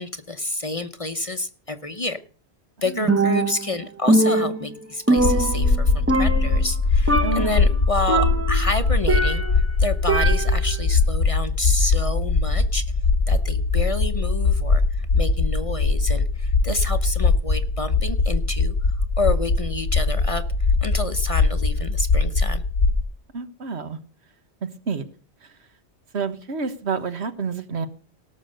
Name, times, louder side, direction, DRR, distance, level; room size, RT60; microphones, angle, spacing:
voice 1, 0.0-2.2 2.8-12.8 13.3-18.7 19.2-20.4 20.8-22.6, left 2 dB, 35° left, 10 dB, 0.8 m, -29 dB
voice 2, 2.8-3.1 7.2-7.5 23.3-24.0 24.6-25.0 25.4-25.5 26.1-27.9, right 5 dB, 75° right, 10 dB, 1.5 m, -29 dB
Percussion, 3.1-3.8 4.1-5.8 6.1-6.8 7.1-7.6 8.1-9.7 10.1-10.7, right 2 dB, 15° right, 0.8 m, -22 dB
sound 1, 5.2-23.0, left 3 dB, 90° left, 1.4 m, -21 dB
18.0 x 6.6 x 6.5 m, 0.39 s
omnidirectional pair, 1.1 m